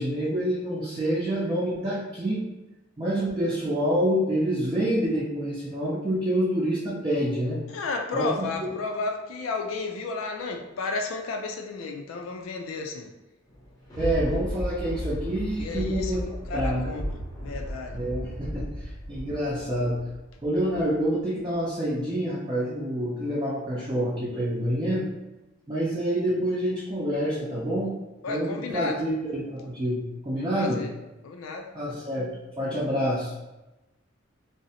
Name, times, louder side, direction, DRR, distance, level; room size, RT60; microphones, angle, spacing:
voice 1, 0.0-2.5 3.0-7.6 8.1-8.5 14.0-16.2 16.5-17.0 17.9-20.0 20.4-25.1 25.7-27.9 28.3-30.8 31.7-32.3 32.6-33.3, equal, 20° right, -8 dB, 0.4 m, -27 dB
voice 2, 7.7-13.1 15.6-16.2 16.5-17.0 17.4-18.0 28.2-29.0 30.5-30.9 31.2-31.7, left 3 dB, 80° left, 3 dB, 0.3 m, -32 dB
Thunder, 13.5-21.0 21.5-21.6, equal, 20° left, 0.6 m, -34 dB
2.5 x 2.0 x 2.7 m, 1.0 s
head